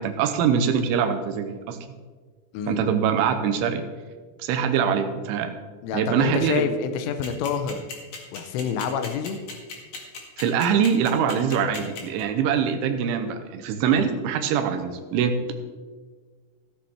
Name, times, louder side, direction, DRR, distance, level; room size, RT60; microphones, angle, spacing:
voice 1, 0.0-1.8 2.7-3.8 4.4-5.5 5.9-6.7 10.4-15.4, right 7 dB, 80° right, 7 dB, 3.1 m, -23 dB
voice 2, 2.5-2.8 5.8-7.9 8.3-9.4, left 6 dB, 80° left, 8 dB, 3.2 m, -27 dB
sound 1, 7.2-12.2, left 4 dB, 50° left, 2.2 m, -36 dB
15.5 x 7.8 x 4.4 m, 1.5 s
omnidirectional pair, 5.7 m